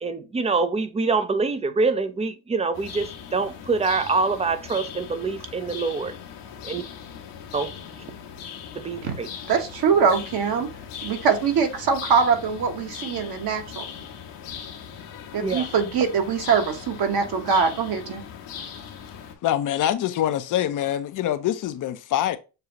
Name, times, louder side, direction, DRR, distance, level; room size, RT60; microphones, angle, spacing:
voice 1, 0.0-6.2 6.6-6.8 7.5-7.7 8.8-9.3 15.4-15.7, right 4 dB, 15° right, 0.4 m, -25 dB
sound 1, 2.7-19.3, left 7 dB, 75° left, 1.2 m, -39 dB
voice 2, 9.5-10.7 11.0-13.8 15.3-18.2, right 6 dB, 50° right, 1.2 m, -23 dB
voice 3, 19.4-22.4, left 11 dB, 40° left, 0.6 m, -24 dB
6.6 x 2.3 x 2.9 m
supercardioid pair, 85°, 48 cm